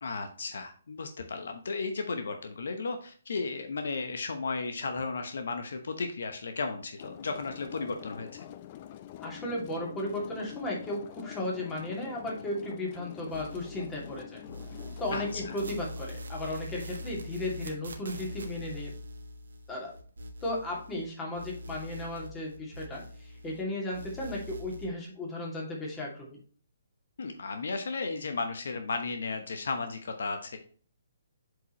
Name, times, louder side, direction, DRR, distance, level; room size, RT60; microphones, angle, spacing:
voice 1, 0.0-8.5 15.1-15.6 27.2-30.6, left 4 dB, 70° left, 6 dB, 1.0 m, -34 dB
sound 1, 7.0-15.7, left 12 dB, 35° left, 0.6 m, -46 dB
voice 2, 9.2-14.4 15.0-18.9 19.7-19.9 20.4-26.4, left 1 dB, 15° left, -2 dB, 2.6 m, -35 dB
sound 2, 13.3-14.2 14.5-21.1 21.3-23.6 23.9-24.9, left 1 dB, 75° right, 1.3 m, -43 dB
7.9 x 5.0 x 3.1 m, 0.44 s
hypercardioid pair, 140°, 0 cm